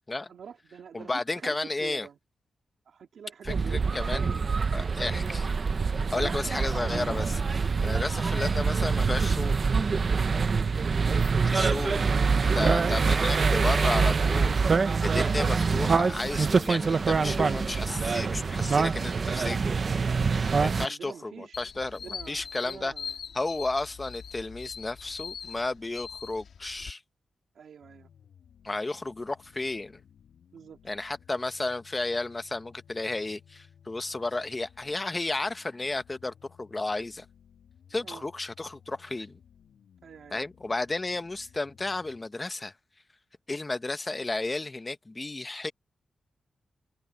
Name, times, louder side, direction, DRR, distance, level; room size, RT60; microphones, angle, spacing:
voice 1, 0.3-2.2 2.9-5.3 6.1-6.6 11.4-11.8 16.8-17.1 20.6-21.6 21.9-23.2 23.5-23.7 27.5-28.1 30.5-30.8 38.0-38.2 40.0-40.4, right 7 dB, 75° right, 2.5 m, -45 dB
voice 2, 0.9-2.1 3.4-5.6 6.1-9.8 11.4-12.0 12.4-19.8 20.6-22.9 23.3-27.0 28.6-30.0 30.8-37.2 37.9-39.3 40.3-42.7 43.5-45.7, left 2 dB, 20° left, 0.9 m, -33 dB
sound 1, 3.5-20.9, right 5 dB, 40° right, 0.8 m, -25 dB
sound 2, 21.5-26.9, left 6 dB, 70° left, 1.7 m, -42 dB
sound 3, 27.8-42.3, left 8 dB, 90° left, 5.9 m, -58 dB
wide cardioid pair, 160°, 0 cm